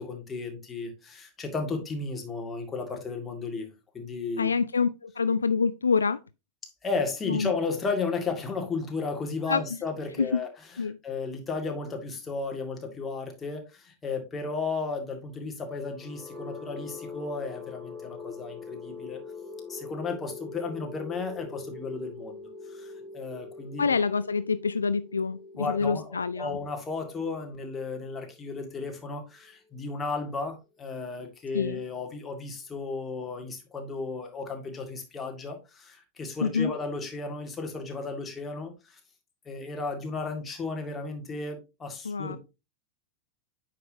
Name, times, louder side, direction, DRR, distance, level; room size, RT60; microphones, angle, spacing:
voice 1, 0.0-3.7 3.9-4.5 6.8-19.2 19.7-24.0 25.6-39.0 39.5-42.4, left 4 dB, 20° left, 2.1 m, -34 dB
voice 2, 4.4-6.2 7.3-7.5 9.5-9.6 10.2-10.3 10.8-11.0 23.8-26.6 31.5-31.8 36.4-36.7 42.0-42.4, left 5 dB, 75° left, 0.3 m, -26 dB
sound 1, 15.8-29.7, left 4 dB, 5° right, 1.8 m, -44 dB
9.1 x 5.8 x 2.7 m
figure-of-eight pair, 90°, 0 cm